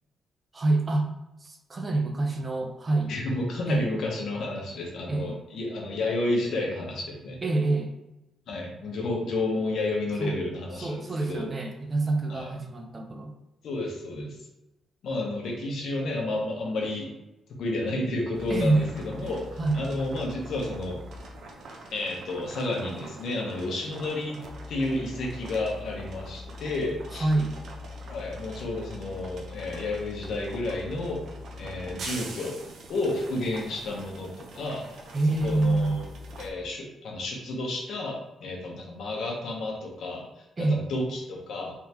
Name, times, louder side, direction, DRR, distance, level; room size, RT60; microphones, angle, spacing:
voice 1, 0.5-1.1 1.4-3.1 3.7-3.8 5.1-5.4 7.4-7.9 10.2-10.3 10.7-13.3 18.5-18.9 19.2-19.8 27.1-27.6 35.1-36.0 40.6-40.9, right 2 dB, 35° right, 3 dB, 0.6 m, -26 dB
voice 2, 3.1-7.4 8.5-11.5 12.3-12.5 13.6-14.4 15.0-17.1 17.5-19.5 19.7-21.0 21.9-27.3 28.1-31.2 31.6-32.6 32.9-35.0 35.4-36.1 36.4-41.7, left 2 dB, 75° left, -1 dB, 1.0 m, -31 dB
sound 1, 18.3-36.5, equal, 70° right, 0.7 m, -42 dB
3.5 x 3.3 x 3.0 m, 0.95 s
cardioid pair, 90°, 0 cm